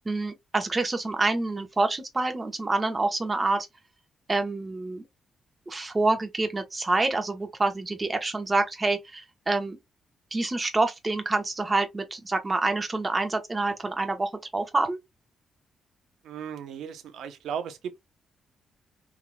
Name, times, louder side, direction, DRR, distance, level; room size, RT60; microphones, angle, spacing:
voice 1, 0.0-3.7 4.3-5.0 5.7-9.8 10.3-15.0, right 2 dB, 25° right, 1.1 m, -27 dB
voice 2, 16.2-18.0, right 7 dB, 80° right, 0.8 m, -36 dB
3.6 x 3.0 x 2.2 m
cardioid pair, 80°, 0 cm